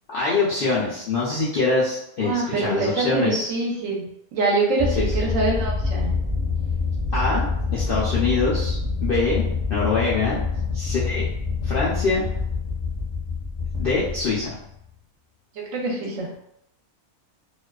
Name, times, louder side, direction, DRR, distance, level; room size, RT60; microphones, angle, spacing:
voice 1, 0.1-3.5 5.2-5.3 7.1-7.4 7.7-8.8 9.0-10.4 10.7-11.3 11.6-12.2 13.8-14.6, left 3 dB, 85° left, -7 dB, 0.4 m, -24 dB
voice 2, 2.2-4.0 4.3-6.1 15.6-16.3, right 3 dB, 65° right, -1 dB, 0.9 m, -24 dB
sound 1, 4.8-14.9, left 4 dB, 20° left, 0.6 m, -26 dB
2.5 x 2.3 x 2.2 m, 0.77 s
omnidirectional pair, 1.6 m